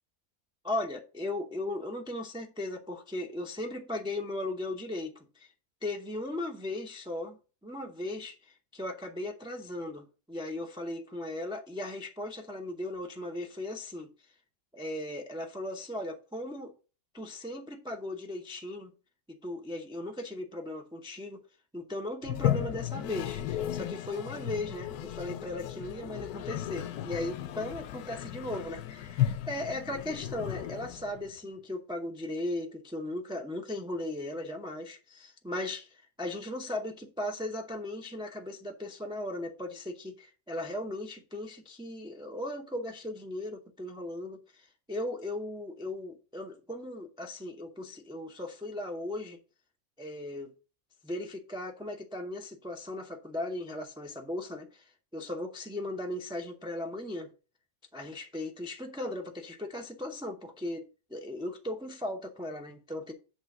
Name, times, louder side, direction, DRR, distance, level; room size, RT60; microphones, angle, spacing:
voice 1, 0.6-5.5 5.8-14.1 14.7-16.7 17.1-18.9 19.4-21.4 21.7-49.4 50.0-50.5 51.0-57.3 57.9-60.8 61.1-63.1, left 1 dB, 5° right, 0.3 m, -37 dB
Toilet flush, 22.2-31.3, left 11 dB, 90° left, 1.1 m, -34 dB
8.3 x 3.3 x 6.5 m
omnidirectional pair, 1.6 m